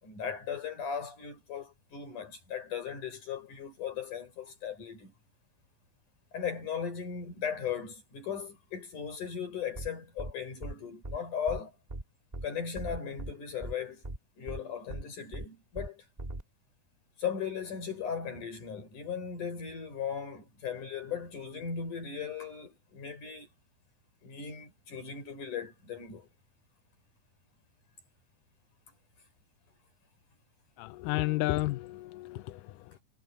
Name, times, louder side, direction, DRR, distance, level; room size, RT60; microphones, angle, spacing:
voice 1, 0.0-5.1 6.3-11.7 12.4-14.0 14.4-16.0 17.2-23.5 24.2-26.3, left 7 dB, 65° left, 7.4 m, -37 dB
sound 1, 9.8-9.9 10.2-10.3 10.6-10.7 11.0-11.2 11.5-11.6 11.9-12.0 12.3-12.5 12.8-13.3 13.6-13.7 14.0-14.2 14.5-14.6 14.9-15.0 15.3-15.5 15.8-15.9 16.2-16.4, right 2 dB, 15° right, 1.4 m, -38 dB
voice 2, 30.8-33.0, left 18 dB, 85° left, 2.2 m, -32 dB
omnidirectional pair, 3.8 m